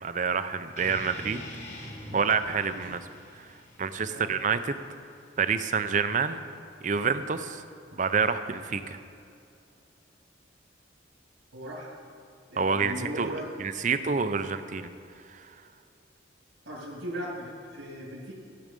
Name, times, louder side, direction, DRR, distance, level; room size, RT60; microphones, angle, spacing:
voice 1, 0.0-1.4 2.1-3.0 3.3-3.4 3.8-4.8 5.4-6.4 6.8-7.6 7.9-9.0 12.6-13.3 13.6-14.9 15.3-15.5, right 5 dB, 40° right, 11 dB, 0.5 m, -27 dB
sound 1, 0.8-5.8, left 1 dB, 35° left, 1.7 m, -45 dB
voice 2, 11.5-11.9 12.5-13.6 16.7-18.3, equal, 85° right, -6 dB, 2.1 m, -38 dB
15.5 x 7.7 x 5.3 m, 2.6 s
head